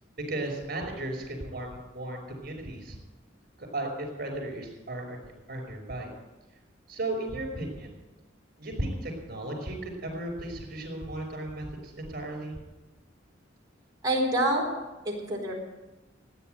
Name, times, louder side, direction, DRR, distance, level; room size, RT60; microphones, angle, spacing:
voice 1, 0.3-3.0 3.6-6.1 6.9-7.9 8.6-12.6, right 1 dB, 50° right, 3 dB, 5.4 m, -35 dB
voice 2, 14.0-14.6 15.0-15.6, right 1 dB, 20° right, -3 dB, 4.3 m, -26 dB
15.5 x 9.9 x 8.0 m, 1.1 s
head